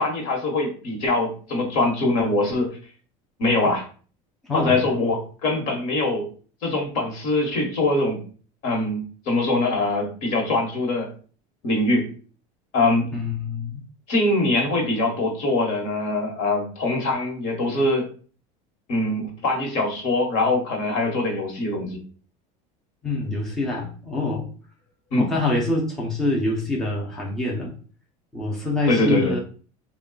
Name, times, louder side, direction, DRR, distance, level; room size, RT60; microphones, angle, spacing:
voice 1, 0.0-2.7 3.4-3.8 4.5-6.3 6.6-8.2 8.6-11.1 11.6-12.1 12.7-13.0 14.1-18.1 18.9-22.0 25.1-25.3 28.9-29.3, left 2 dB, 50° left, 2 dB, 1.2 m, -23 dB
voice 2, 4.4-4.8 13.1-13.8 23.0-24.5 25.2-27.7 28.3-29.4, left 2 dB, 5° left, -3 dB, 0.6 m, -25 dB
3.5 x 2.3 x 3.8 m, 0.40 s
cardioid pair, 165°, 17 cm